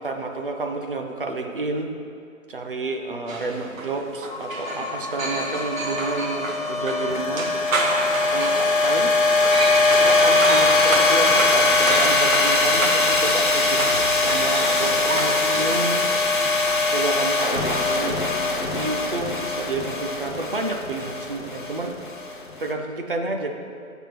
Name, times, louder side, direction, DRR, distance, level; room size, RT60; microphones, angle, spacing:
voice 1, 0.0-1.9 2.5-7.5 8.2-9.1 9.9-13.9 14.2-16.1 16.9-18.2 18.7-21.9 22.6-23.5, right 3 dB, 40° right, 3 dB, 0.4 m, -30 dB
sound 1, 3.3-17.2, right 2 dB, 70° right, 1.2 m, -30 dB
sound 2, 4.3-22.6, left 3 dB, 40° left, 0.4 m, -22 dB
6.6 x 3.6 x 5.8 m, 2.4 s
hypercardioid pair, 155°, 42 cm